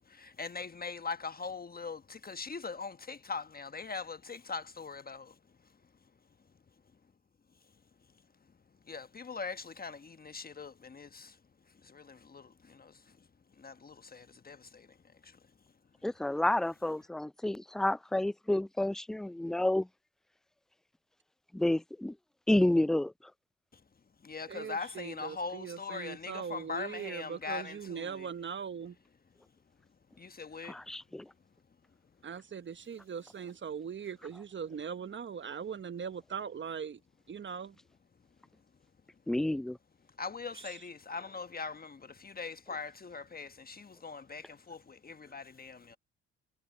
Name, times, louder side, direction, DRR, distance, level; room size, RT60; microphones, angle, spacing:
voice 1, 0.0-5.4 8.9-11.4 11.8-13.2 13.6-15.4 24.2-28.3 30.2-30.8 40.2-46.0, left 4 dB, 30° left, 1.2 m, -41 dB
voice 2, 16.0-19.9 21.5-22.2 22.5-23.1 30.7-31.3 39.3-39.8, left 1 dB, ahead, 0.4 m, -30 dB
voice 3, 24.5-28.9 32.2-37.0 37.3-37.7, right 7 dB, 40° right, 1.2 m, -40 dB
hypercardioid pair, 60°, 31 cm